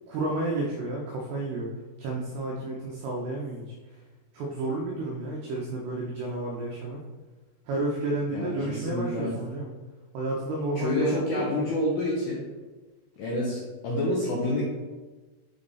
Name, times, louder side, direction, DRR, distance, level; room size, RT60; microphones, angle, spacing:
voice 1, 0.1-1.7 2.0-3.6 4.3-7.0 7.7-9.7 10.1-11.7, right 2 dB, 90° right, -2 dB, 2.3 m, -31 dB
voice 2, 8.3-9.3 10.8-12.4 13.2-14.6, left 1 dB, 85° left, -4 dB, 2.3 m, -28 dB
7.1 x 3.7 x 3.9 m, 1.3 s
omnidirectional pair, 5.6 m